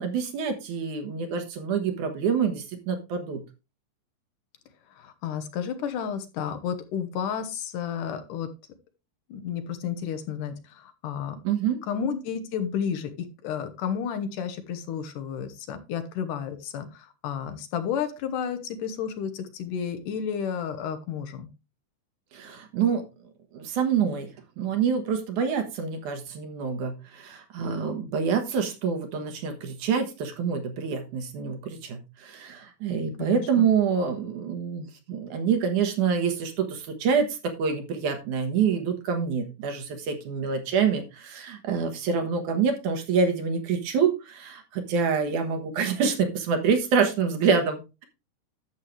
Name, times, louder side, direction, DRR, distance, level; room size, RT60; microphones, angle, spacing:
voice 1, 0.0-3.4 11.4-11.8 22.3-23.0 23.5-24.3 24.6-48.0, right 6 dB, 65° right, 6 dB, 2.7 m, -26 dB
voice 2, 5.0-8.5 9.3-11.4 11.9-21.5 33.2-33.7, left 7 dB, 75° left, 8 dB, 2.6 m, -32 dB
11.5 x 7.6 x 3.2 m, 0.28 s
omnidirectional pair, 3.9 m